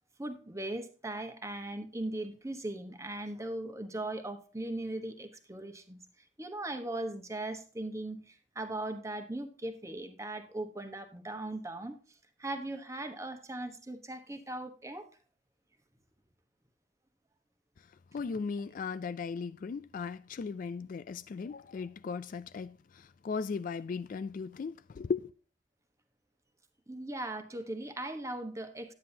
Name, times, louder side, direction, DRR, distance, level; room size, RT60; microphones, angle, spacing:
voice 1, 0.2-6.0 6.4-12.0 12.4-15.1 26.9-28.9, right 1 dB, 15° right, 1.1 m, -39 dB
voice 2, 18.1-25.3, left 5 dB, 50° left, 0.3 m, -37 dB
9.8 x 9.3 x 2.7 m
head